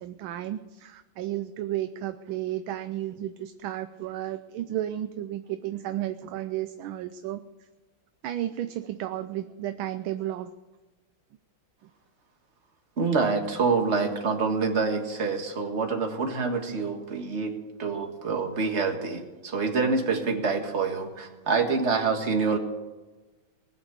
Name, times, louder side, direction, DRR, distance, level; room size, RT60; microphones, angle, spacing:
voice 1, 0.0-7.4 8.2-10.5, right 13 dB, 75° right, 10 dB, 1.4 m, -33 dB
voice 2, 13.0-17.5 17.8-22.6, right 4 dB, 35° right, 3 dB, 1.9 m, -26 dB
20.0 x 7.2 x 8.2 m, 1.2 s
omnidirectional pair, 2.3 m